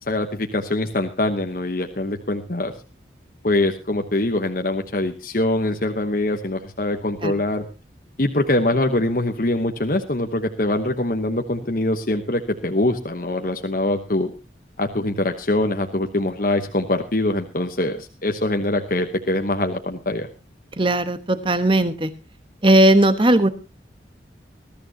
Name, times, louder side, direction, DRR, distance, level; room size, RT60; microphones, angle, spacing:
voice 1, 0.0-2.7 3.4-7.6 8.2-14.3 14.8-20.3, left 1 dB, 50° left, 5 dB, 1.1 m, -23 dB
voice 2, 20.8-22.1 22.6-23.5, right 1 dB, 25° right, 11 dB, 1.2 m, -17 dB
21.0 x 13.5 x 2.9 m, 0.30 s
head